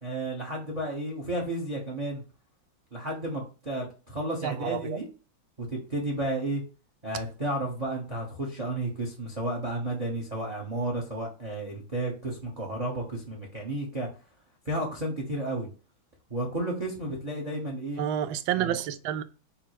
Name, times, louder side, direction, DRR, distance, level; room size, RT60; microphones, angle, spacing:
voice 1, 0.0-2.2 2.9-5.1 5.6-6.6 7.0-14.1 14.6-15.7 16.3-18.0 18.6-18.8, right 1 dB, 30° right, 0.8 m, -32 dB
voice 2, 4.4-5.0 18.0-19.2, right 10 dB, 85° right, 1.3 m, -29 dB
5.4 x 2.1 x 4.6 m
omnidirectional pair, 2.1 m